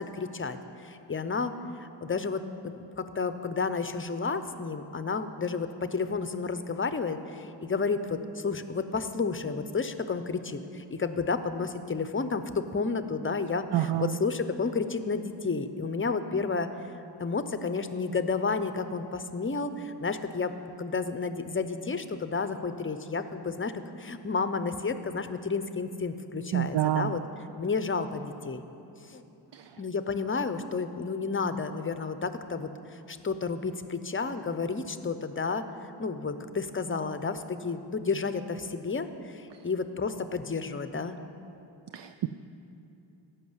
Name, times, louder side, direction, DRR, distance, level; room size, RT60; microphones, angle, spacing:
voice 1, 0.0-1.5 1.8-16.7 17.2-20.5 20.8-27.2 27.6-28.6 29.1-29.2 29.8-35.7 36.0-41.2, left 4 dB, 25° left, 10 dB, 0.7 m, -31 dB
voice 2, 13.7-14.2 26.5-27.2 29.5-29.7 41.9-42.3, right 12 dB, 65° right, 10 dB, 0.5 m, -28 dB
16.0 x 5.9 x 8.0 m, 2.9 s
wide cardioid pair, 85°, 46 cm